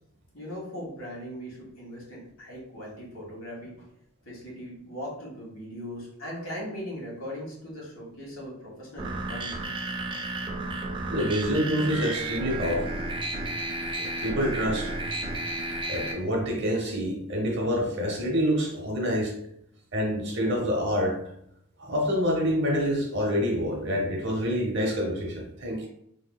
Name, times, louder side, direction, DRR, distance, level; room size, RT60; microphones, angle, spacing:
voice 1, 0.3-3.9 4.2-9.6, equal, 70° left, -3 dB, 1.2 m, -39 dB
sound 1, 9.0-16.1, right 2 dB, 20° right, 0.3 m, -32 dB
voice 2, 11.1-13.0 13.9-14.9 15.9-19.3 19.9-21.2 21.8-25.9, equal, 55° right, 1 dB, 0.8 m, -27 dB
3.6 x 2.7 x 2.2 m, 0.71 s
head